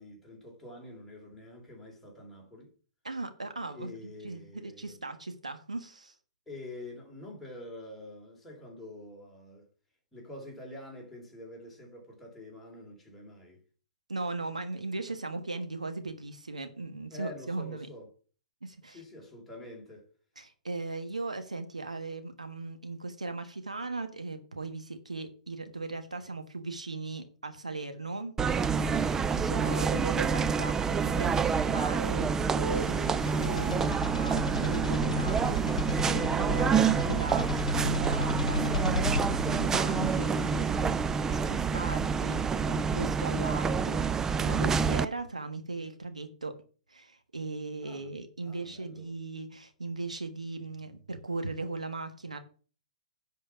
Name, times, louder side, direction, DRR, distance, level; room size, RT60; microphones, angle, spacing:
voice 1, 0.0-2.7 3.7-5.0 6.5-9.7 10.1-13.6 17.1-18.1 18.8-20.1 47.8-48.1 48.4-49.2, left 1 dB, 5° left, 3.3 m, -46 dB
voice 2, 3.0-6.1 14.1-17.9 18.6-19.0 20.4-46.5 46.9-52.4, right 3 dB, 90° right, 1.4 m, -38 dB
sound 1, 28.4-45.0, right 6 dB, 15° right, 0.4 m, -28 dB
sound 2, 32.7-41.0, left 2 dB, 85° left, 0.9 m, -35 dB
10.5 x 4.6 x 6.9 m
figure-of-eight pair, 120°, 4 cm